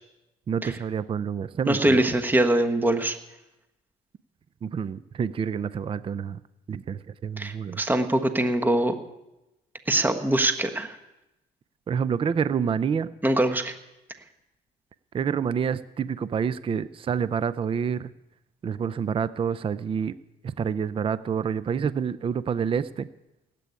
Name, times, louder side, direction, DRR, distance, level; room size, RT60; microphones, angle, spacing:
voice 1, 0.5-2.0 4.6-6.4 6.7-7.8 11.9-13.1 15.1-18.1 18.6-20.2 20.4-23.1, right 7 dB, 30° right, 15 dB, 0.5 m, -28 dB
voice 2, 1.7-3.2 7.4-8.9 9.9-11.0 13.2-13.7, right 1 dB, 10° right, 7 dB, 1.3 m, -23 dB
17.0 x 8.4 x 9.7 m, 0.95 s
cardioid pair, 110°, 17 cm